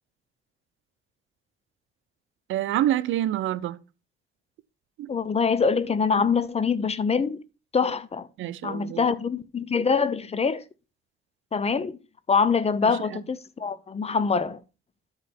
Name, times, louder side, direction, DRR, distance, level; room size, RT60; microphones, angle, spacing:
voice 1, 2.5-3.8 5.0-5.1 8.4-9.1 12.8-13.2, right 13 dB, 80° right, 0.7 m, -27 dB
voice 2, 5.1-7.4 7.7-8.3 8.6-10.6 11.5-12.0 12.3-14.6, left 5 dB, 30° left, 0.8 m, -24 dB
12.0 x 5.3 x 4.4 m
cardioid pair, 90°, 20 cm